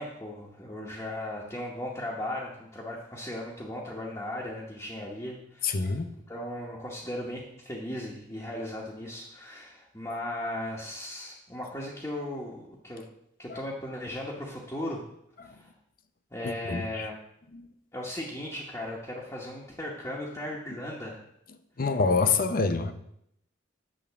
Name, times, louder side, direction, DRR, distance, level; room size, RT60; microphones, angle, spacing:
voice 1, 0.0-6.0 6.3-13.1 13.4-15.0 15.4-15.7 16.3-17.2 17.9-21.2, left 1 dB, 15° left, -5 dB, 1.1 m, -37 dB
voice 2, 5.6-6.1 13.5-13.6 15.4-15.5 16.4-17.1 17.5-17.7 21.8-22.9, left 4 dB, 45° left, 10 dB, 0.6 m, -27 dB
8.6 x 3.6 x 6.9 m, 0.75 s
head